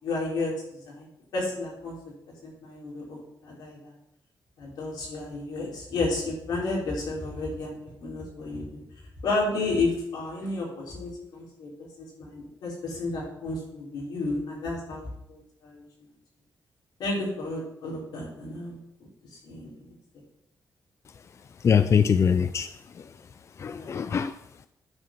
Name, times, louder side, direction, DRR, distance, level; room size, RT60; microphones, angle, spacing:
voice 1, 0.0-0.5 0.9-1.1 1.3-1.9 2.4-3.9 4.6-8.8 9.2-16.1 17.0-18.8 19.4-19.9 23.8-23.9, left 2 dB, 85° left, -3 dB, 3.8 m, -32 dB
voice 2, 21.6-22.7 23.6-24.3, left 7 dB, 45° left, 11 dB, 0.4 m, -22 dB
9.5 x 5.2 x 5.9 m, 0.81 s
cardioid pair, 90°, 7 cm